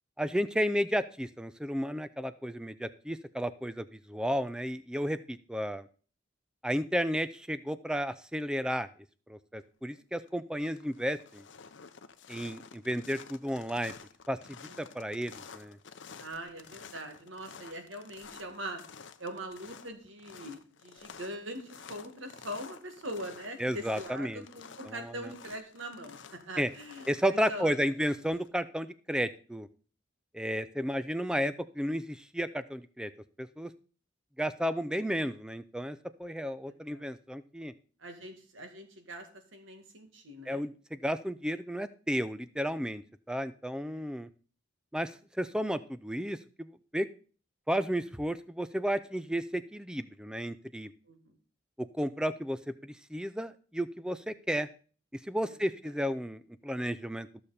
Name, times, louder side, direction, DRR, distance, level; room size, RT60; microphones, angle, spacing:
voice 1, 0.2-5.9 6.6-8.9 9.3-11.4 12.3-13.9 14.3-15.8 23.6-24.5 24.9-25.2 26.6-26.7 27.1-29.7 30.3-33.1 33.4-33.7 34.4-37.7 40.5-44.3 44.9-46.7 46.9-47.1 47.7-50.9 51.8-54.7 55.2-57.4, equal, 5° right, 13 dB, 0.5 m, -33 dB
sound 1, 9.9-10.3 10.6-28.5, left 6 dB, 60° left, 0.7 m, -51 dB
voice 2, 14.7-15.0 16.2-18.8 19.2-27.9 36.5-37.1 38.0-40.6 43.8-44.0 51.1-51.4 55.4-55.6, right 1 dB, 70° right, 5 dB, 2.1 m, -42 dB
14.0 x 6.7 x 4.3 m, 0.41 s
head